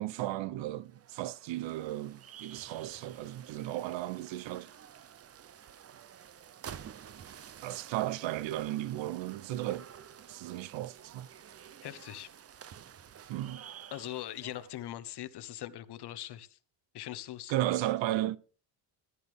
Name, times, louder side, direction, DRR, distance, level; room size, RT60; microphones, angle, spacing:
voice 1, 0.0-4.7 7.6-9.9 10.3-11.3 13.3-13.7 17.5-18.4, right 14 dB, 75° right, 0.8 m, -34 dB
sound 1, 0.8-14.8, right 9 dB, 30° right, 0.6 m, -51 dB
voice 2, 11.8-12.3 13.9-16.6 16.9-17.5, left 13 dB, 60° left, 1.1 m, -41 dB
14.0 x 12.5 x 3.5 m
cardioid pair, 135°, 45 cm